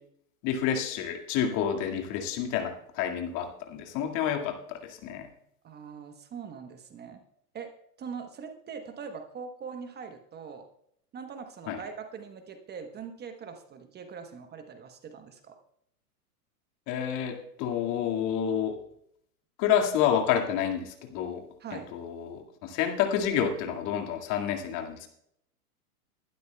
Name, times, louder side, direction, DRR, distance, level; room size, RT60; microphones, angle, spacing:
voice 1, 0.4-5.3 11.7-11.8 16.9-18.8 19.6-21.4 21.9-25.1, left 9 dB, 40° left, 3 dB, 2.1 m, -29 dB
voice 2, 5.6-7.2 7.5-7.7 8.0-10.7 11.1-15.6 21.6-21.9, right 6 dB, 20° right, 7 dB, 1.1 m, -42 dB
21.5 x 12.0 x 2.3 m, 0.72 s
hypercardioid pair, 110°, 46 cm